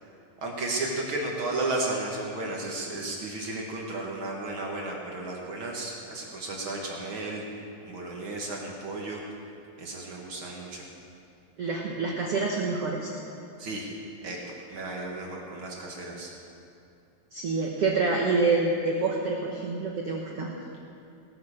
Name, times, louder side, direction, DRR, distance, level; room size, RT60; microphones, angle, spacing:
voice 1, 0.4-7.4 7.8-9.2 9.8-10.9 13.6-13.9 14.2-16.3, right 2 dB, 50° right, -1 dB, 1.6 m, -33 dB
voice 2, 11.6-13.1 17.3-20.5, right 3 dB, 85° right, -1 dB, 1.3 m, -27 dB
18.5 x 9.4 x 6.6 m, 2.7 s
omnidirectional pair, 4.6 m